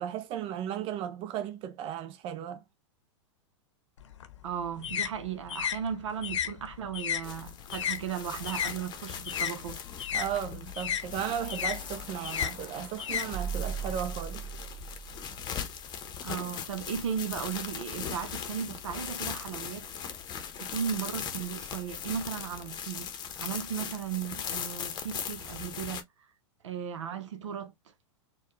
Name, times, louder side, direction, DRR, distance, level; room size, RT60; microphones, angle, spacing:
voice 1, 0.0-2.6 10.1-14.4, right 10 dB, 35° right, 0.6 m, -35 dB
sound 1, 4.0-8.8 9.1-13.9, left 8 dB, 70° left, 0.8 m, -34 dB
voice 2, 4.4-9.8 16.2-19.9 20.6-26.0 26.6-27.7, right 8 dB, 70° right, 0.7 m, -36 dB
sound 2, 7.2-26.0, left 8 dB, 25° left, 0.8 m, -39 dB
sound 3, 11.0-16.3, right 7 dB, 10° right, 1.6 m, -41 dB
4.3 x 2.3 x 3.0 m
hypercardioid pair, 105°, 16 cm